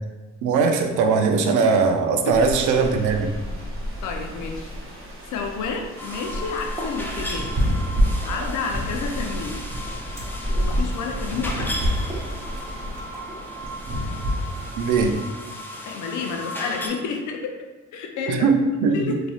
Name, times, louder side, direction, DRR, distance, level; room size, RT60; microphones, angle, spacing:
voice 1, 0.4-3.3 14.8-15.1 18.3-19.2, right 4 dB, 80° right, 5 dB, 0.5 m, -20 dB
sound 1, 2.3-15.1, equal, 45° right, 0.7 m, -29 dB
voice 2, 4.0-4.7 5.3-7.5 8.2-9.6 10.5-11.8 15.8-19.2, left 5 dB, 75° left, 3 dB, 0.5 m, -30 dB
sound 2, 5.7-5.8 6.2-7.2 7.7-8.8 9.1-10.9 11.4-11.5 11.6-12.3 12.6-12.7 12.9-14.0 14.4-15.0 15.8-16.3, equal, 10° right, 0.9 m, -41 dB
sound 3, 6.0-16.9, left 1 dB, 5° left, 0.4 m, -35 dB
3.1 x 2.6 x 2.3 m, 1.2 s
cardioid pair, 90°, 30 cm